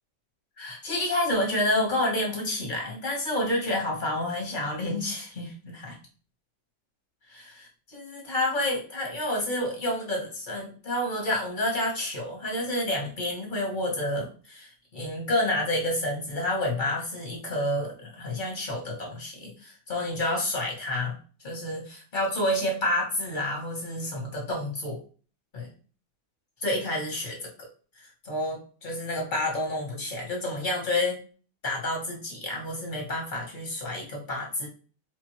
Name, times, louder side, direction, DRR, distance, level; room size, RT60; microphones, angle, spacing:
voice 1, 0.6-6.0 7.3-21.2 21.4-25.0 25.5-25.7 26.6-27.7 28.0-31.2 31.6-34.7, left 1 dB, 30° left, -1 dB, 1.1 m, -29 dB
4.4 x 2.6 x 3.1 m, 0.39 s
omnidirectional pair, 2.1 m